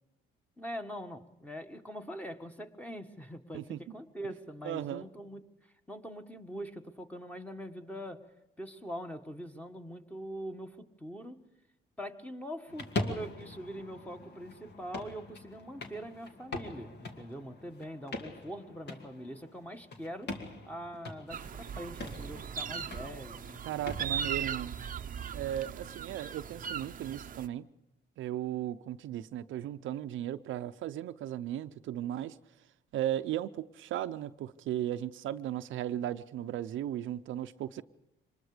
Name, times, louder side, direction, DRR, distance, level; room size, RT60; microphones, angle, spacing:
voice 1, 0.6-5.4 5.9-8.3 8.6-11.4 12.0-20.3 20.7-23.7, equal, 5° left, 1.7 m, -43 dB
voice 2, 4.6-5.1 23.7-24.7 25.3-27.7 28.2-32.4 32.9-37.8, right 12 dB, 75° right, 0.7 m, -36 dB
sound 1, 12.7-24.3, left 2 dB, 55° left, 2.4 m, -42 dB
sound 2, 21.3-27.5, right 8 dB, 45° right, 0.7 m, -38 dB
25.0 x 20.5 x 5.1 m
cardioid pair, 90°, 20 cm